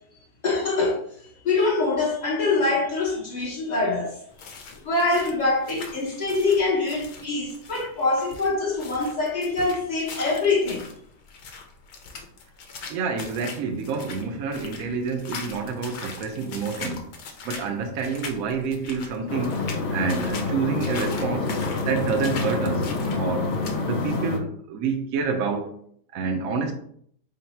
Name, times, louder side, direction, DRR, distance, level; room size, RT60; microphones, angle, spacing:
voice 1, 0.4-1.0 1.4-4.2 4.8-10.8, left 3 dB, 35° left, 0.7 m, -24 dB
sound 1, 4.3-24.2, left 4 dB, 70° left, 1.1 m, -40 dB
voice 2, 12.9-17.1 17.4-19.6 19.9-21.5 21.9-22.9 23.2-23.5 23.9-25.7 26.1-26.7, right 5 dB, 70° right, 0.8 m, -28 dB
sound 2, 19.3-24.4, left 3 dB, 90° left, 0.6 m, -27 dB
3.9 x 2.2 x 4.2 m
omnidirectional pair, 1.9 m